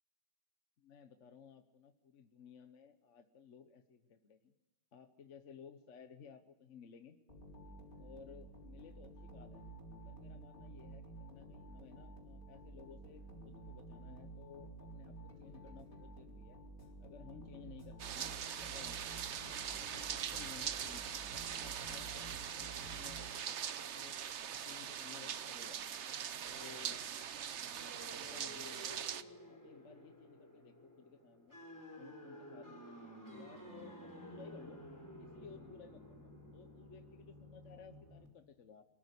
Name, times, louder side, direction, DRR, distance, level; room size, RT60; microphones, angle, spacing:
voice 1, 0.8-4.5 4.9-7.2 8.0-9.6 10.0-16.6 17.0-19.4 19.8-21.0 21.5-24.2 24.6-26.0 26.5-27.0 28.1-29.0 29.5-31.6 31.9-32.9 33.3-34.8 35.2-38.8, left 6 dB, 45° left, 8 dB, 1.1 m, -57 dB
sound 1, 7.3-23.7, right 2 dB, 25° left, 4.1 m, -52 dB
sound 2, 18.0-29.2, right 8 dB, 65° right, 0.7 m, -42 dB
sound 3, 27.8-38.3, equal, 10° left, 4.3 m, -53 dB
23.5 x 14.0 x 8.1 m, 1.1 s
omnidirectional pair, 2.1 m